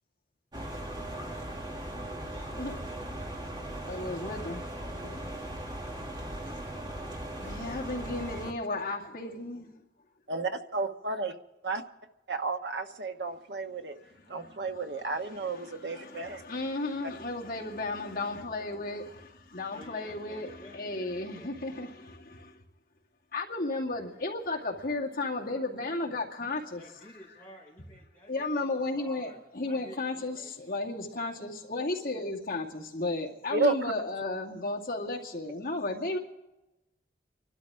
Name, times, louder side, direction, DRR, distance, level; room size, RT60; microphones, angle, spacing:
sound 1, 0.5-8.5, right 1 dB, 25° right, 1.4 m, -38 dB
voice 1, 3.9-4.6 5.0-5.2 7.4-9.7 14.2-14.8 15.2-22.6 23.3-26.8 28.3-36.2, left 2 dB, 55° left, 2.3 m, -34 dB
voice 2, 10.3-11.3 11.6-11.8 12.3-13.9 14.3-16.4 33.5-33.7, right 3 dB, 75° right, 1.2 m, -32 dB
voice 3, 19.7-21.6 26.8-30.8, equal, 10° left, 5.0 m, -52 dB
29.5 x 12.5 x 3.7 m
head